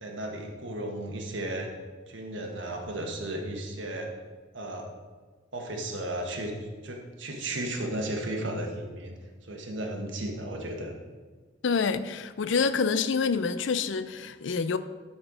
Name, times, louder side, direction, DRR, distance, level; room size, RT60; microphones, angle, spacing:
voice 1, 0.0-1.7 2.1-4.1 4.5-4.9 5.5-6.5 6.8-9.1 9.4-11.0, right 1 dB, 75° right, 1.5 m, -34 dB
voice 2, 11.6-14.8, left 5 dB, 75° left, 0.5 m, -27 dB
12.0 x 4.4 x 5.0 m
head